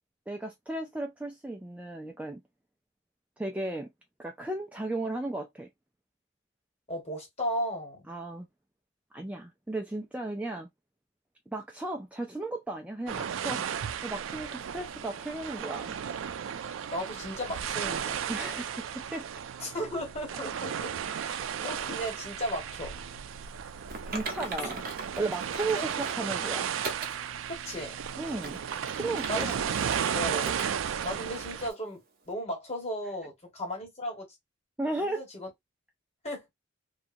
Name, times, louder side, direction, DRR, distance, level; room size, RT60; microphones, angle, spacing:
voice 1, 0.3-2.4 3.4-3.9 4.2-5.7 8.1-8.5 9.1-10.7 11.5-13.6 14.0-15.9 18.3-19.3 21.0-21.4 24.1-24.8 25.2-26.7 28.2-28.6 28.9-29.7 34.8-35.2, right 2 dB, 5° right, 0.3 m, -35 dB
voice 2, 6.9-8.0 16.9-18.2 19.6-20.9 21.2-22.9 25.7-25.8 27.6-27.9 29.3-29.7 30.1-30.6 31.0-32.0 32.3-34.3 35.0-35.5 36.2-36.4, equal, 35° left, 1.3 m, -35 dB
sound 1, 13.1-31.7, right 8 dB, 85° right, 0.4 m, -34 dB
Typing, 23.9-26.2 26.8-27.2 27.7-27.8 28.3-30.1 30.4-30.7 31.0-31.1 31.7-31.8, right 3 dB, 50° right, 0.7 m, -39 dB
2.8 x 2.3 x 2.5 m
head